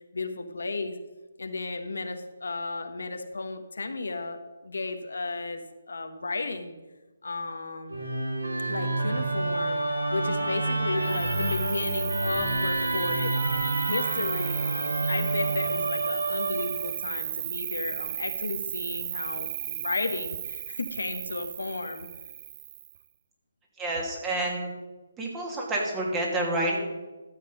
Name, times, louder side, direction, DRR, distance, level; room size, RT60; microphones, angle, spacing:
voice 1, 0.1-1.0 1.4-6.7 7.2-8.0 8.7-9.8 10.1-13.4 13.8-22.1, left 3 dB, 70° left, 7 dB, 1.1 m, -34 dB
Musical instrument, 7.9-17.1, right 2 dB, 85° right, 1.9 m, -28 dB
Cricket, 11.0-23.0, right 11 dB, 35° right, 0.5 m, -35 dB
voice 2, 23.8-24.7 25.2-26.9, right 1 dB, 15° right, -2 dB, 2.4 m, -28 dB
12.5 x 7.4 x 5.3 m, 1.2 s
figure-of-eight pair, 145°, 0 cm